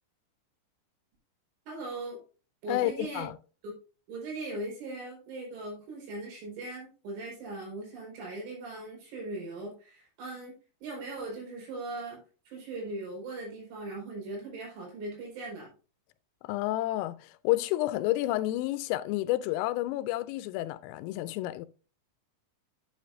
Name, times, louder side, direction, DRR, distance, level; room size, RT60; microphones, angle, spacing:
voice 1, 1.7-2.2 2.6-3.3 3.6-3.8 4.1-10.5 10.8-12.2 12.5-15.7, right 2 dB, 75° right, 7.4 m, -39 dB
voice 2, 2.7-3.4 16.4-21.7, left 16 dB, 85° left, 3.1 m, -30 dB
11.5 x 8.0 x 2.6 m
omnidirectional pair, 5.8 m